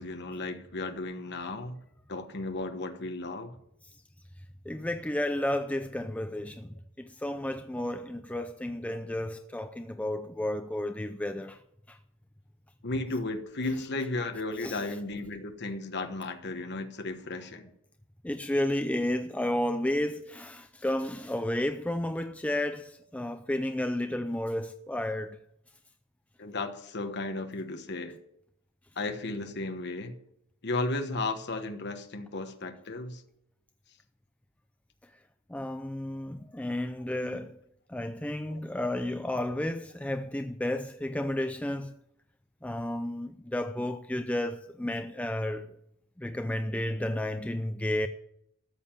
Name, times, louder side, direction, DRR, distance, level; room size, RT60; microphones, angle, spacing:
voice 1, 0.0-1.8 2.1-3.6 8.3-8.5 12.8-17.7 26.4-28.2 28.9-30.2 30.6-33.2 37.2-37.4 38.5-38.6, left 2 dB, 50° left, 1.2 m, -34 dB
voice 2, 4.7-11.6 11.9-12.0 14.6-14.8 18.2-25.4 35.5-37.6 37.9-41.9 42.6-45.8 46.2-48.1, left 1 dB, 5° left, 0.4 m, -32 dB
13.5 x 7.4 x 8.9 m
head